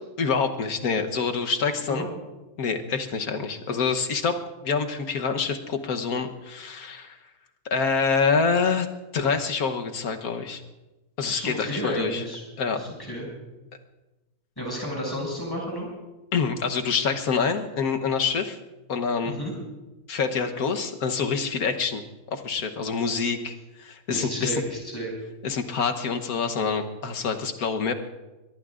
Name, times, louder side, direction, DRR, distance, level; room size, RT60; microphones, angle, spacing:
voice 1, 0.2-2.0 2.6-4.4 4.6-7.2 7.7-8.9 9.1-10.6 11.2-12.2 12.6-12.8 16.3-18.6 18.9-19.3 20.1-22.0 22.3-24.5 25.4-27.9, left 5 dB, 80° left, 5 dB, 1.6 m, -26 dB
voice 2, 11.2-12.4 12.7-13.3 14.6-15.9 19.2-19.5 24.1-25.1, equal, 15° left, -2 dB, 6.5 m, -32 dB
23.5 x 21.5 x 2.5 m, 1.1 s
omnidirectional pair, 1.5 m